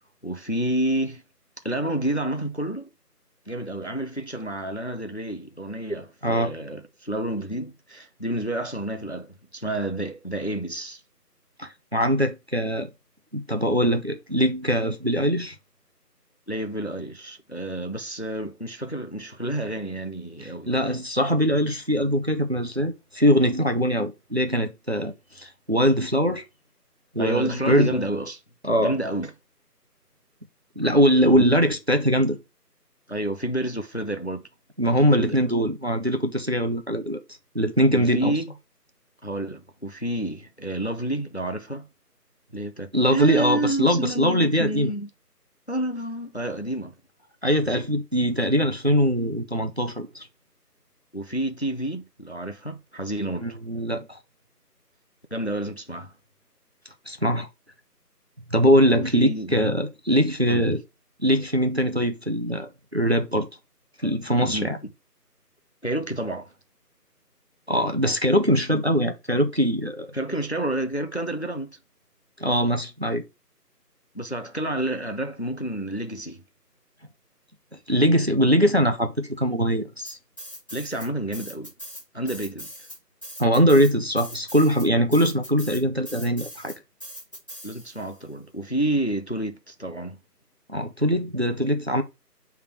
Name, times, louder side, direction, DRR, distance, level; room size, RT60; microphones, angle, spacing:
voice 1, 0.2-1.2 1.6-2.9 3.5-11.0 16.5-20.7 27.2-28.4 28.8-29.3 31.3-31.5 33.1-34.4 35.2-35.5 37.9-38.5 39.2-41.9 42.5-45.1 45.7-47.0 51.1-53.5 55.3-56.1 58.9-59.5 60.4-60.7 64.5-64.7 65.8-66.5 70.1-71.8 74.1-76.4 80.7-81.7 82.1-82.7 87.6-90.2, right 1 dB, 45° left, 0.5 m, -29 dB
voice 2, 11.6-12.9 13.3-15.5 20.4-26.4 27.1-28.0 28.6-29.0 30.8-32.4 34.8-37.2 37.5-38.3 42.9-44.9 47.4-50.3 53.4-54.2 57.1-57.5 58.5-60.8 61.2-63.5 64.0-64.8 67.7-70.1 72.4-73.2 77.9-80.2 83.4-86.7 90.7-92.0, equal, 40° right, 0.6 m, -22 dB
sound 1, 80.1-81.1 81.3-88.2, equal, 20° left, 1.5 m, -40 dB
6.6 x 3.5 x 4.3 m
figure-of-eight pair, 170°, 49 cm